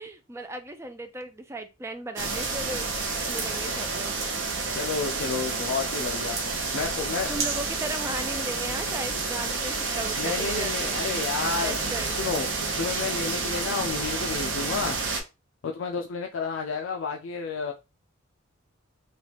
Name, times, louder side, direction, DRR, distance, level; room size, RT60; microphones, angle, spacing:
voice 1, 0.0-2.9 3.3-4.1 7.3-11.1 11.6-12.2, right 2 dB, 15° right, 0.4 m, -36 dB
sound 1, 2.2-15.2, right 4 dB, 65° right, 0.7 m, -29 dB
voice 2, 4.7-6.4 6.7-7.3 10.2-12.5 12.8-15.0 15.6-17.7, left 5 dB, 70° left, 0.4 m, -31 dB
3.1 x 2.4 x 2.9 m
head